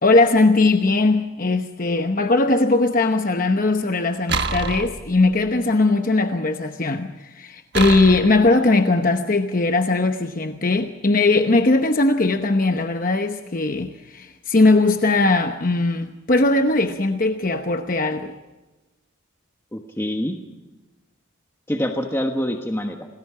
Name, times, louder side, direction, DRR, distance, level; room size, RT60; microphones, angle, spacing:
voice 1, 0.0-18.3, left 2 dB, 40° left, 0.9 m, -19 dB
sound 1, 4.3-5.5 7.7-8.5, right 4 dB, 50° right, 1.4 m, -27 dB
voice 2, 19.7-20.4 21.7-23.1, equal, 10° left, 1.2 m, -25 dB
27.5 x 20.0 x 4.9 m
head